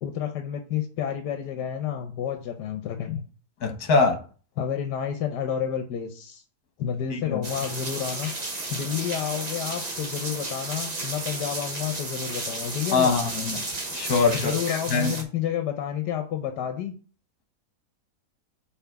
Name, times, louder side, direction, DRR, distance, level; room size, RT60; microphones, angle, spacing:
voice 1, 0.0-3.2 4.6-6.4 6.8-8.3 8.7-13.2 14.3-16.9, left 9 dB, 85° left, 6 dB, 1.4 m, -30 dB
voice 2, 3.6-4.2 7.1-7.4 12.9-13.6 13.9-15.2, left 4 dB, 65° left, 5 dB, 1.7 m, -23 dB
sound 1, 7.4-15.2, right 2 dB, 25° right, 1.2 m, -33 dB
5.7 x 4.2 x 5.8 m, 0.39 s
omnidirectional pair, 1.7 m